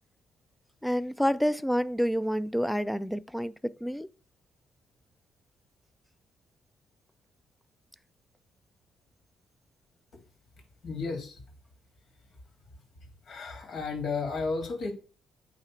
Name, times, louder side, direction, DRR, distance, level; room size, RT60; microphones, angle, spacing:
voice 1, 0.8-4.1, equal, 5° left, 0.5 m, -28 dB
voice 2, 10.8-11.4 12.2-12.3 13.2-14.9, left 4 dB, 55° left, 3.1 m, -33 dB
9.0 x 3.3 x 6.0 m
cardioid pair, 90°, 0 cm